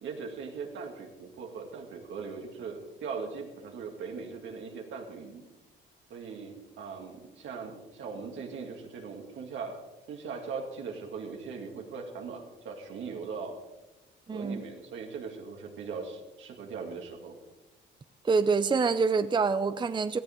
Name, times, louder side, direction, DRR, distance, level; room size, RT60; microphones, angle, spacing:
voice 1, 0.0-5.5 6.1-9.8 10.1-13.6 14.3-17.3, right 5 dB, 75° right, 2 dB, 2.8 m, -40 dB
voice 2, 14.3-14.6 18.2-20.2, right 4 dB, 25° right, 12 dB, 0.6 m, -26 dB
17.5 x 14.5 x 3.8 m, 1.0 s
cardioid pair, 90°, 20 cm